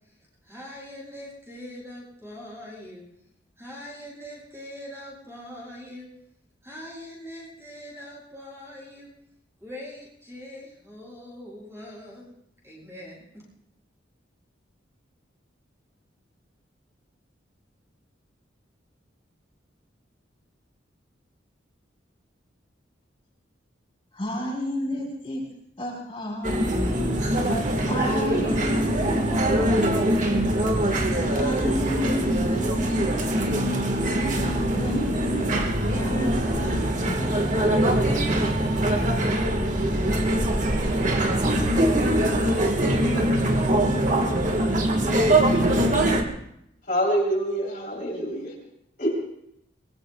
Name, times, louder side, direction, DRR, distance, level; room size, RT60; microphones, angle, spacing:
voice 1, 0.4-3.1 3.6-6.1 6.6-9.1 9.6-12.2 12.6-13.4, left 1 dB, 15° right, -5 dB, 7.4 m, -42 dB
voice 2, 24.1-25.4 25.8-27.0 27.8-29.9 31.3-33.5 34.7-35.5 35.9-37.4, left 1 dB, 30° left, -4 dB, 4.4 m, -32 dB
sound 1, 26.4-46.2, right 1 dB, 40° right, 1.5 m, -23 dB
voice 3, 46.9-48.5 49.0-49.2, right 1 dB, 45° left, -3 dB, 3.2 m, -25 dB
24.0 x 22.0 x 2.3 m, 0.76 s
head